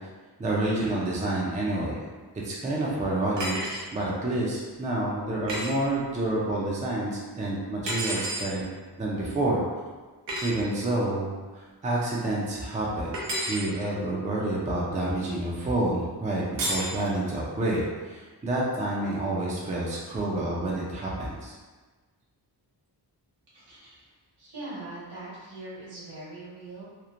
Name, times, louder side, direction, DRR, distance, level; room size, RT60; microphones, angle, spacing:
voice 1, 0.4-1.9 2.4-3.5 3.9-8.7 9.0-9.6 10.4-13.1 13.4-21.5, right 2 dB, 20° right, -5 dB, 0.4 m, -28 dB
sound 1, 3.4-3.9 5.5-5.7 7.9-8.5 10.3-10.5 13.1-13.7 16.6-16.9, right 1 dB, 90° right, 0.7 m, -30 dB
voice 2, 23.5-24.1 24.4-26.8, right 2 dB, 70° right, -8 dB, 1.3 m, -41 dB
2.9 x 2.1 x 2.4 m, 1.3 s
wide cardioid pair, 110°, 42 cm